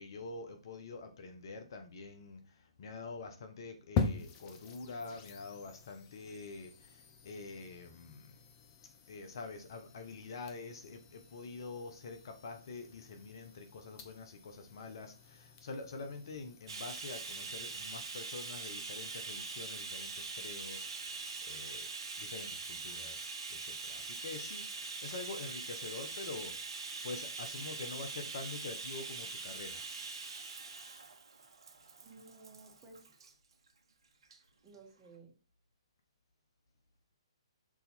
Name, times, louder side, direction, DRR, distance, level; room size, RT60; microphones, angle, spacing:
voice 1, 0.0-8.3 9.1-21.9 22.2-29.9, left 3 dB, 55° left, 1.1 m, -46 dB
sound 1, 4.0-18.0, left 5 dB, 30° left, 1.0 m, -44 dB
Bathtub (filling or washing), 16.7-33.3 34.2-34.4 34.7-34.8, right 4 dB, 60° right, 1.1 m, -43 dB
voice 2, 32.0-33.0 34.6-35.3, right 3 dB, 20° right, 2.0 m, -56 dB
6.2 x 4.1 x 4.3 m
figure-of-eight pair, 130°, 3 cm